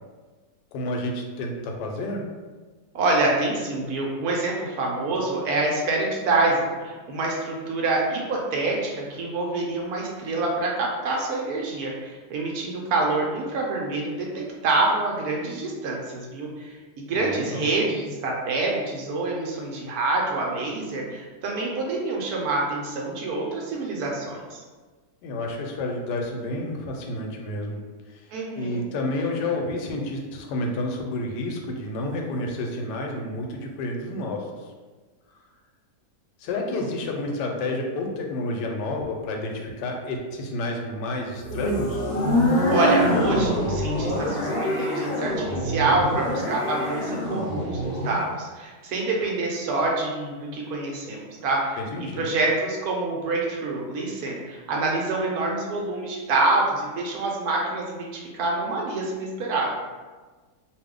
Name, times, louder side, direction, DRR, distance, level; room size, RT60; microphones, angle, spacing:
voice 1, 0.7-2.2 17.1-17.7 25.2-27.8 28.1-28.3 28.6-34.5 36.4-42.0 51.8-52.3, left 1 dB, 90° left, 1 dB, 1.2 m, -30 dB
voice 2, 2.9-24.6 28.3-28.8 42.7-59.7, right 2 dB, 70° right, -1 dB, 1.0 m, -26 dB
sound 1, 41.4-48.2, equal, 60° left, 0.6 m, -25 dB
2.6 x 2.4 x 3.5 m, 1.4 s
omnidirectional pair, 1.8 m